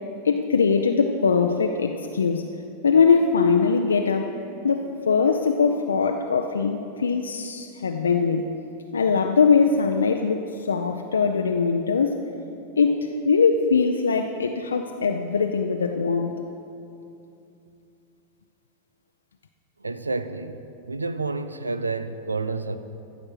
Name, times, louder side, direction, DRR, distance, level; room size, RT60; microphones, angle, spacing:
voice 1, 0.2-2.4 2.8-4.3 4.6-8.4 8.9-12.2 12.8-16.4, left 5 dB, 70° left, 0.5 m, -21 dB
voice 2, 19.8-22.8, right 3 dB, 80° right, 0.5 m, -30 dB
14.0 x 7.3 x 6.6 m
figure-of-eight pair, 90°, 0 cm